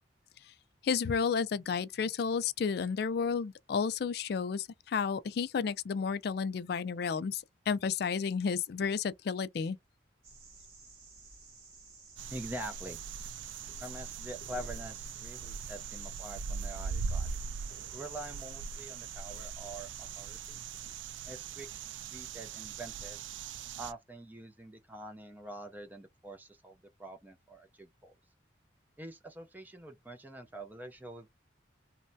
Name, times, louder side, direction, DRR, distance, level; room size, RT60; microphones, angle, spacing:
voice 1, 0.8-9.8, left 6 dB, 55° left, 0.3 m, -32 dB
sound 1, 10.2-21.0, right 3 dB, 55° right, 1.4 m, -55 dB
sound 2, 12.2-23.9, right 5 dB, 70° right, 0.3 m, -40 dB
voice 2, 12.3-13.0 13.8-17.5 17.9-20.6 21.3-23.2 23.8-28.1 29.0-31.3, right 1 dB, 10° right, 0.5 m, -45 dB
3.1 x 2.2 x 2.6 m
head